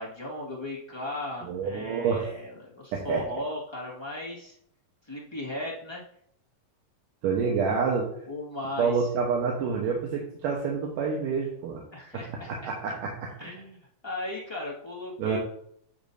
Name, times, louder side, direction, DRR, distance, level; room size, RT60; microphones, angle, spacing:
voice 1, 0.0-4.6 5.0-6.0 7.4-7.5 8.2-9.1 11.9-12.7 13.4-15.4, left 1 dB, 30° left, -6 dB, 0.5 m, -37 dB
voice 2, 1.4-2.3 2.9-3.2 7.2-8.1 8.8-11.8 12.1-13.5 15.2-15.4, right 5 dB, 75° right, -1 dB, 2.6 m, -28 dB
10.5 x 7.3 x 2.7 m, 0.67 s
omnidirectional pair, 4.0 m